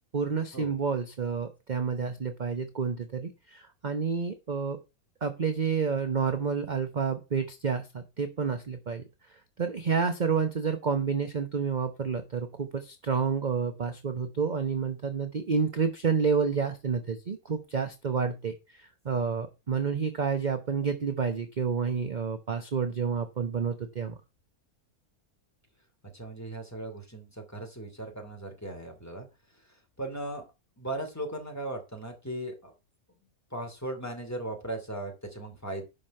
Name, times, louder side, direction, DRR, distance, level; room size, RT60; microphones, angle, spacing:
voice 1, 0.1-4.8 5.2-9.0 9.6-24.2, right 5 dB, 35° right, 8 dB, 0.9 m, -29 dB
voice 2, 26.1-29.3 29.7-30.5 30.8-32.7 33.5-35.9, right 1 dB, 10° left, 2 dB, 2.7 m, -37 dB
11.0 x 5.4 x 5.3 m, 0.27 s
omnidirectional pair, 1.6 m